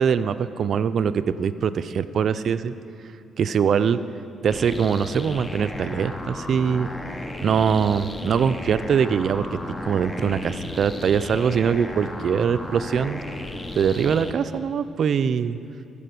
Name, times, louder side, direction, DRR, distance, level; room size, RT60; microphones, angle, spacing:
voice 1, 0.0-2.7 3.4-4.0 4.4-6.9 7.4-13.2 13.8-15.6, right 7 dB, 60° right, 13 dB, 0.4 m, -22 dB
sound 1, 4.5-14.3, left 1 dB, 20° left, 0.7 m, -34 dB
14.5 x 4.9 x 6.8 m, 2.6 s
cardioid pair, 90°, 0 cm